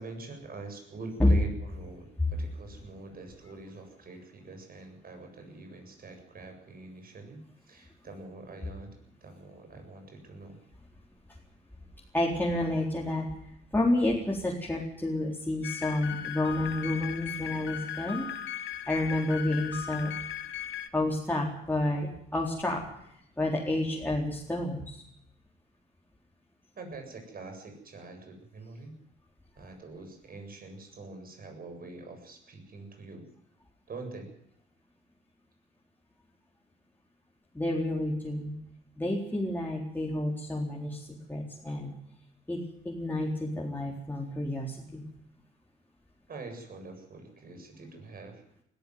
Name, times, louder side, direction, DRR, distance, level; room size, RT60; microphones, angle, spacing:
voice 1, 0.0-10.6 26.8-28.9 29.6-33.3 33.9-34.3 46.3-48.4, right 3 dB, 50° right, 5 dB, 7.8 m, -45 dB
voice 2, 12.1-13.3 13.7-18.3 18.9-20.1 20.9-22.8 23.4-24.8 37.5-38.5 39.0-41.0 41.3-41.9 42.5-45.0, left 1 dB, 10° left, -3 dB, 4.2 m, -29 dB
sound 1, 15.6-20.9, left 10 dB, 75° left, 1.9 m, -37 dB
20.0 x 14.0 x 9.6 m, 0.74 s
cardioid pair, 90°, 20 cm